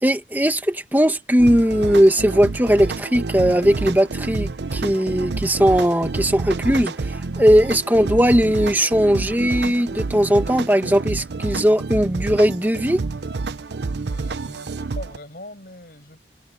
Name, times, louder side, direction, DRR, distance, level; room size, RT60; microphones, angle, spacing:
voice 1, 0.0-13.0, equal, 10° right, 1.4 m, -18 dB
sound 1, 1.4-15.2, right 3 dB, 75° right, 0.6 m, -28 dB
voice 2, 14.0-16.2, left 1 dB, 55° left, 6.8 m, -41 dB
head